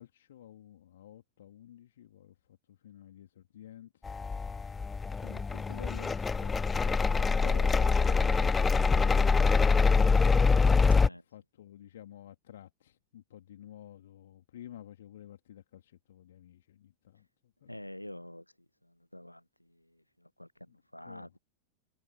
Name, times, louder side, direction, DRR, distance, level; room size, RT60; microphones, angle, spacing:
voice 1, 0.0-17.8 20.7-20.8 21.0-21.4, left 11 dB, 60° left, 2.7 m, -51 dB
sound 1, 4.1-11.1, left 4 dB, 15° left, 0.4 m, -25 dB
voice 2, 17.7-18.4 19.1-19.4 20.4-20.5 20.9-21.4, left 1 dB, 90° left, 1.0 m, -45 dB
figure-of-eight pair, 90°, 0 cm